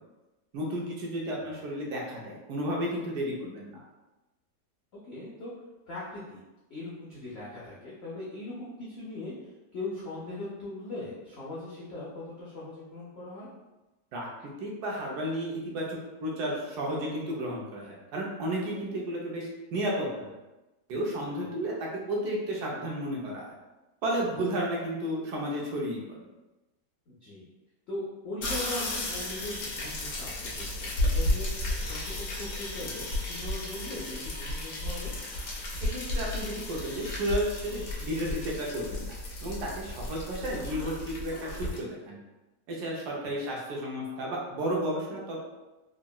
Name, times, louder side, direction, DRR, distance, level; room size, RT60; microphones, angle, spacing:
voice 1, 0.5-3.8 14.1-14.3 14.6-20.3 20.9-23.5 24.0-26.0 35.8-39.1 39.4-42.2 42.7-45.4, right 1 dB, 70° right, -3 dB, 1.1 m, -32 dB
voice 2, 1.2-1.5 4.9-5.5 5.9-6.4 6.7-9.3 9.7-13.5 21.5-21.7 27.1-27.4 27.9-35.1 43.2-43.4, left 2 dB, 80° left, -7 dB, 0.5 m, -40 dB
sound 1, 28.4-41.8, left 1 dB, 65° left, 1.0 m, -33 dB
3.6 x 2.1 x 2.2 m, 1.1 s
omnidirectional pair, 1.9 m